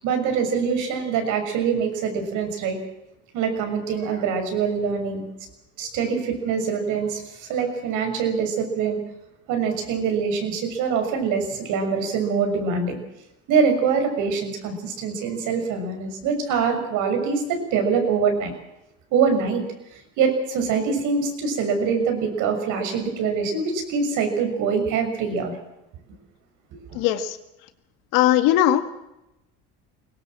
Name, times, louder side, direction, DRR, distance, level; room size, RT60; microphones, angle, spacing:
voice 1, 0.0-2.8 3.3-5.2 5.8-9.0 9.5-13.0 13.5-18.5 19.1-19.6 20.2-25.5 26.9-27.0, right 5 dB, 65° right, 5 dB, 6.3 m, -24 dB
voice 2, 26.9-27.4 28.1-28.9, left 12 dB, 75° left, 10 dB, 1.9 m, -19 dB
21.5 x 18.5 x 7.6 m, 0.92 s
supercardioid pair, 105°, 32 cm